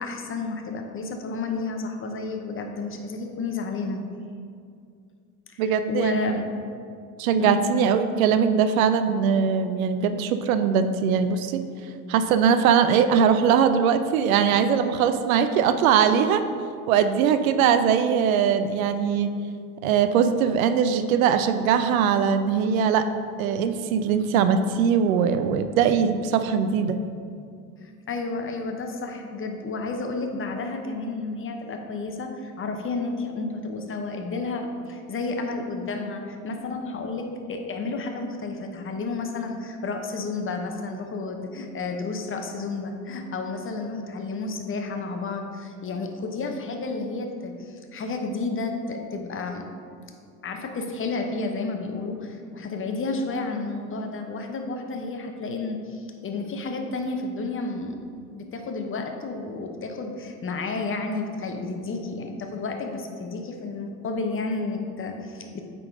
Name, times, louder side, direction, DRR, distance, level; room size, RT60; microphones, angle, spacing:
voice 1, 0.0-4.0 5.5-5.6 5.9-6.4 7.4-7.8 17.5-17.8 27.8-49.7 50.4-57.9 58.3-65.6, left 3 dB, 30° left, 4 dB, 0.9 m, -31 dB
voice 2, 5.6-6.4 7.2-16.4 16.9-19.3 19.8-23.1 23.4-27.0, right 7 dB, 70° right, 10 dB, 0.5 m, -21 dB
8.8 x 3.8 x 3.7 m, 2.3 s
hypercardioid pair, 70°, 44 cm